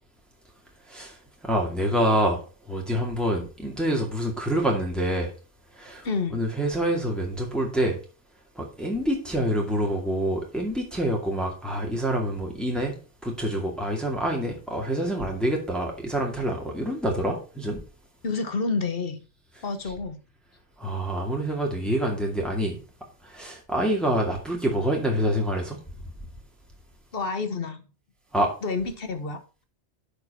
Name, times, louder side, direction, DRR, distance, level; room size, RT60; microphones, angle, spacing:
voice 1, 1.4-2.4 2.7-5.3 5.8-6.1 6.3-8.0 8.6-12.9 13.2-17.8 20.8-22.8 23.2-25.8 28.3-28.5, right 1 dB, ahead, -1 dB, 2.2 m, -26 dB
voice 2, 6.0-6.4 18.2-19.2 19.6-20.2 27.1-27.8 28.6-29.6, left 4 dB, 55° left, 9 dB, 1.3 m, -29 dB
10.5 x 5.2 x 4.3 m, 0.36 s
omnidirectional pair, 1.2 m